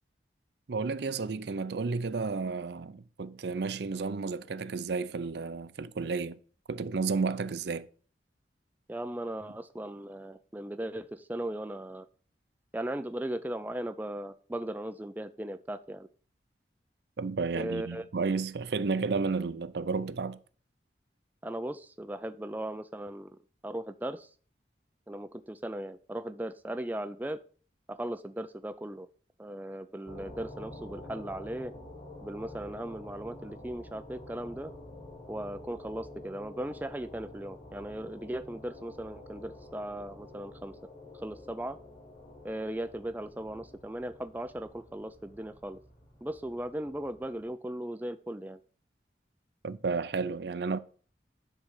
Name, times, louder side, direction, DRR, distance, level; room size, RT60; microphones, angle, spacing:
voice 1, 0.7-6.4 6.7-7.9 17.2-20.4 49.6-50.8, right 4 dB, 70° right, 0.5 m, -32 dB
voice 2, 8.9-12.1 12.7-16.1 17.5-18.0 21.4-23.4 23.6-24.3 25.1-27.4 27.9-29.1 29.4-31.7 32.2-34.7 35.3-40.7 41.1-41.8 42.4-45.8 46.2-48.6, right 1 dB, 10° right, 0.3 m, -37 dB
sound 1, 30.1-47.5, left 1 dB, 45° left, 3.1 m, -49 dB
10.0 x 3.9 x 6.4 m
head